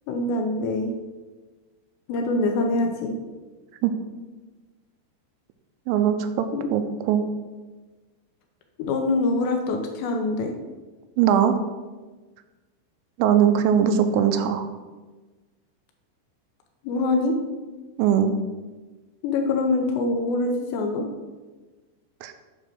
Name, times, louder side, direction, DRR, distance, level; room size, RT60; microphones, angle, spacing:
voice 1, 0.1-0.9 2.1-3.1 6.5-6.7 8.8-10.5 16.8-17.4 19.2-21.1, left 2 dB, 85° left, 3 dB, 2.8 m, -24 dB
voice 2, 5.9-7.2 11.2-11.6 13.2-14.7 18.0-18.4 22.2-22.3, right 8 dB, 90° right, 8 dB, 3.0 m, -20 dB
9.0 x 3.6 x 6.0 m, 1.3 s
omnidirectional pair, 5.4 m